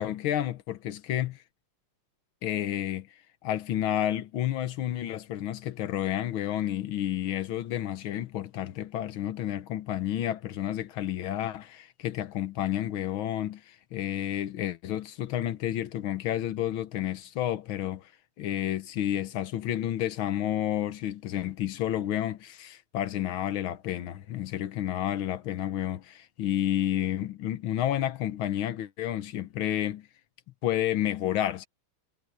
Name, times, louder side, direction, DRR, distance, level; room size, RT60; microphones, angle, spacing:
voice 1, 0.0-1.4 2.4-3.1 3.4-18.1 18.4-30.1 30.6-31.7, left 12 dB, 75° left, 1.7 m, -30 dB
omnidirectional pair, 2.3 m